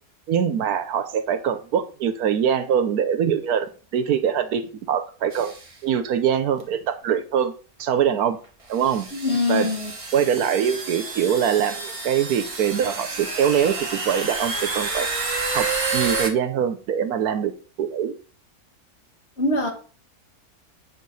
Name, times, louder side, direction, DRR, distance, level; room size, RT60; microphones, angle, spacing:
voice 1, 0.3-4.6 4.9-5.5 5.8-7.5 7.8-8.4 8.7-9.1 9.5-9.7 10.1-15.1 15.5-15.7 15.9-17.5 17.8-18.1, right 8 dB, 80° right, 1.3 m, -23 dB
sound 1, 5.3-5.7 6.6-6.7 7.8-7.9 8.7-16.3, right 3 dB, 25° right, 1.0 m, -29 dB
voice 2, 9.1-9.9 19.4-19.7, left 3 dB, 45° left, 1.9 m, -23 dB
7.4 x 6.6 x 4.0 m
omnidirectional pair, 1.6 m